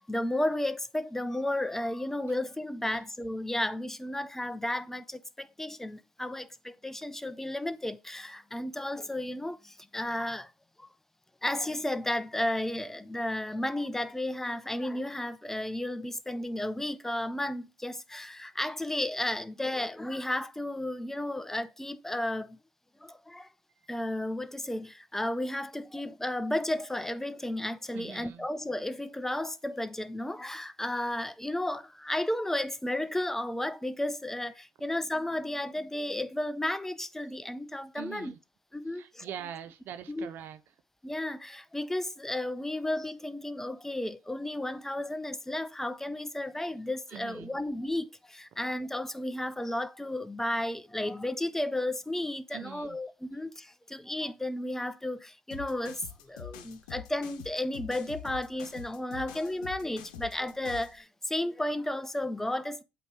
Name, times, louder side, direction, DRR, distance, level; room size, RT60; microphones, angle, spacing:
voice 1, 0.0-10.5 10.8-10.9 11.4-22.6 23.0-23.5 23.9-38.3 38.7-39.3 40.1-40.3 41.0-62.8, left 1 dB, 10° left, 0.6 m, -33 dB
voice 2, 27.9-28.5 37.9-38.4 38.9-40.6 47.1-47.6 52.5-53.0, right 10 dB, 60° right, 0.5 m, -43 dB
sound 1, 55.5-61.0, left 10 dB, 85° left, 0.9 m, -45 dB
8.0 x 3.0 x 4.6 m
hypercardioid pair, 65°, 4 cm